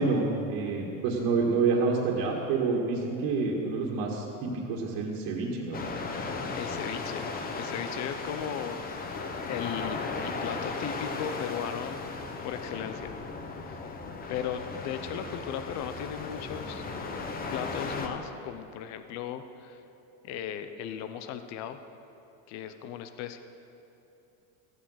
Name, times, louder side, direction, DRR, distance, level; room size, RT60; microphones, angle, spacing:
voice 1, 0.0-5.9, right 4 dB, 60° right, -4 dB, 2.0 m, -28 dB
sound 1, 5.7-18.1, left 4 dB, 20° left, 1.0 m, -36 dB
voice 2, 6.5-7.3 7.5-8.8 9.1-12.0 12.4-13.1 13.7-13.9 14.3-16.8 17.5-19.8 20.2-21.8 22.5-23.4, left 9 dB, 45° left, 10 dB, 0.7 m, -37 dB
15.5 x 9.7 x 6.5 m, 2.9 s
cardioid pair, 155°, 40 cm